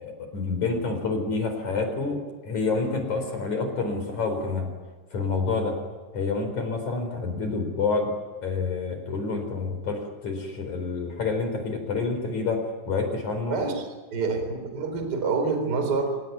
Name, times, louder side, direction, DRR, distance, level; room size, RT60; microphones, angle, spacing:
voice 1, 0.0-4.7 5.1-5.8 6.1-8.1 8.4-13.6, left 4 dB, 40° left, 5 dB, 5.3 m, -28 dB
voice 2, 13.5-16.1, right 4 dB, 20° right, 6 dB, 4.1 m, -27 dB
28.0 x 18.5 x 9.5 m, 1.4 s
omnidirectional pair, 5.4 m